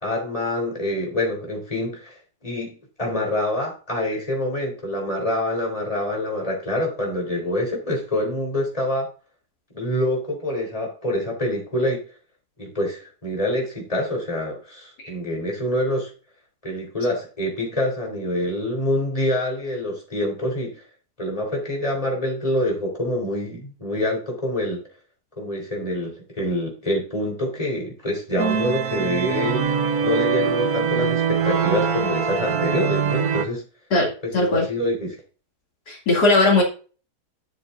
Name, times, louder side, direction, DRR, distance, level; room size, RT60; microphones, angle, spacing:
voice 1, 0.0-2.2 2.4-9.1 9.7-12.0 12.6-16.1 16.6-20.8 21.2-24.8 25.4-29.6 30.0-33.6 34.2-35.2, left 1 dB, 20° left, 0 dB, 3.7 m, -26 dB
sound 1, 28.4-33.5, right 7 dB, 70° right, 1.4 m, -23 dB
voice 2, 33.9-34.6 35.9-36.6, left 2 dB, 80° left, -1 dB, 3.1 m, -19 dB
12.0 x 7.0 x 2.5 m, 0.37 s
omnidirectional pair, 1.7 m